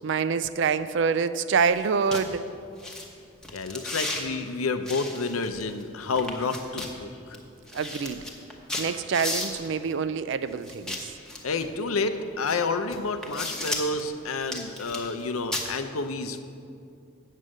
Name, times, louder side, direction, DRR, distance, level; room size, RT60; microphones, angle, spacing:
voice 1, 0.0-2.4 7.7-8.2 8.8-11.1, right 5 dB, 60° right, 13 dB, 0.4 m, -26 dB
sound 1, 1.7-1.8 2.1-2.2 2.8-3.0 3.4-4.2 4.9-5.8 6.1-6.9 7.3-7.4 7.7-9.7 10.7-11.7 12.4-12.6 12.9-14.0 14.4-15.2 15.5-15.7, left 1 dB, 5° left, 0.9 m, -34 dB
voice 2, 3.5-7.4 11.4-16.4, left 3 dB, 90° left, 9 dB, 0.6 m, -29 dB
8.3 x 7.5 x 6.4 m, 2.5 s
head